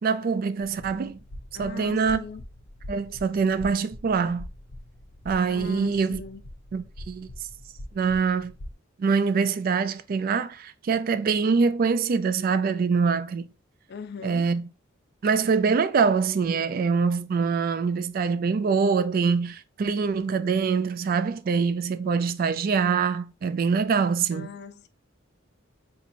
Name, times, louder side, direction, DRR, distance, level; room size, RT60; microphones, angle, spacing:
voice 1, 0.0-1.2 1.6-2.2 2.9-4.5 5.3-6.2 6.7-7.3 7.9-8.5 9.0-13.5 14.2-14.6 15.2-24.5, right 5 dB, 45° right, 0.3 m, -24 dB
sound 1, 0.6-8.7, left 1 dB, 85° left, 0.7 m, -43 dB
voice 2, 1.5-2.4 5.5-6.4 13.9-14.5 24.3-24.9, left 5 dB, 55° left, 0.4 m, -40 dB
4.9 x 2.9 x 2.6 m
head